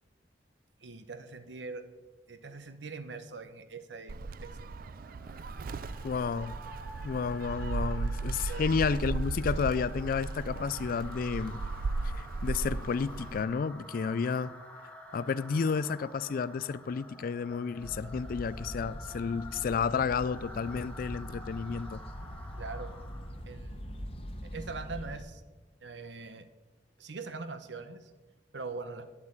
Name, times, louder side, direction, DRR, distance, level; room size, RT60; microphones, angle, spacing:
voice 1, 0.8-1.9 2.3-4.1 4.4-4.5 8.5-8.6 22.6-22.9 23.5-24.1 24.4-25.4 25.8-26.5 27.0-28.1 28.5-29.1, right 4 dB, 85° right, 1.0 m, -42 dB
Gull seagull, 4.1-13.4, right 3 dB, 55° right, 0.4 m, -36 dB
sound 1, 4.6-23.5, left 1 dB, 10° left, 1.3 m, -50 dB
voice 2, 6.0-6.5 7.0-11.6 12.0-14.5 15.1-22.0, left 5 dB, 55° left, 0.3 m, -31 dB
sound 2, 17.8-25.2, equal, 35° left, 1.0 m, -42 dB
8.8 x 8.2 x 8.8 m
head